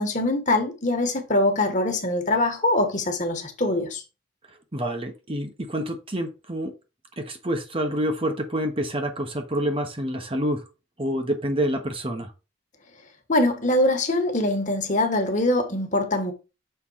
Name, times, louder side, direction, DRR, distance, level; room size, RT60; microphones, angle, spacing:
voice 1, 0.0-4.0 13.3-16.3, left 1 dB, 40° left, 1.5 m, -23 dB
voice 2, 4.5-6.7 7.2-10.6 11.0-12.3, equal, 30° right, 1.1 m, -27 dB
6.8 x 3.8 x 5.7 m
head